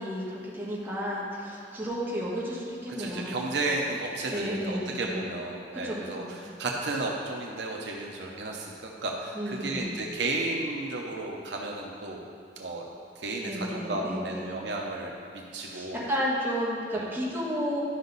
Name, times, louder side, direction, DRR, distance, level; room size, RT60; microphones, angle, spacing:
voice 1, 0.0-3.5 4.3-5.3 5.8-6.4 9.3-9.9 13.4-14.4 15.7-17.8, equal, 10° right, -7 dB, 1.7 m, -32 dB
voice 2, 3.0-12.3 12.6-12.8 13.2-15.1 15.5-16.1 16.9-17.2, right 2 dB, 70° right, 0 dB, 0.8 m, -33 dB
11.5 x 5.3 x 4.0 m, 2.5 s
head